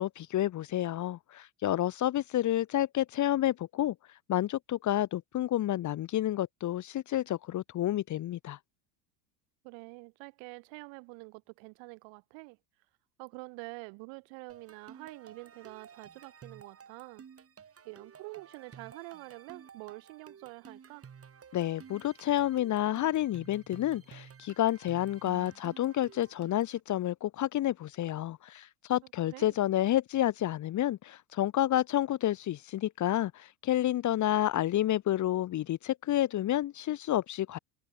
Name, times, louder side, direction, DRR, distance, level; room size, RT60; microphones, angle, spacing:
voice 1, 0.0-3.9 4.3-8.6 21.5-37.6, left 13 dB, 35° left, 1.0 m, -30 dB
voice 2, 9.6-12.6 13.2-17.2 17.8-21.1 29.3-29.6, right 32 dB, 65° right, 5.7 m, -46 dB
sound 1, 14.5-26.8, right 7 dB, 30° right, 3.8 m, -53 dB
hypercardioid pair, 90°, 48 cm